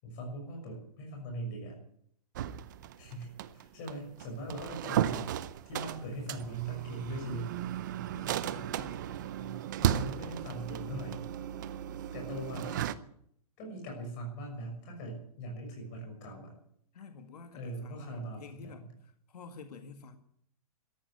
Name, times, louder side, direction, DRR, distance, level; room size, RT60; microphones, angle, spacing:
voice 1, 0.0-1.8 3.0-5.3 5.6-7.5 9.4-11.3 12.1-12.9 13.6-16.5 17.5-18.8, right 1 dB, 25° left, 1 dB, 6.4 m, -41 dB
sound 1, 2.3-12.9, right 11 dB, 30° right, 0.6 m, -35 dB
voice 2, 8.1-9.0 16.9-20.2, left 5 dB, 85° left, 6 dB, 2.0 m, -50 dB
13.5 x 11.0 x 9.7 m, 0.67 s
hypercardioid pair, 175°, 20 cm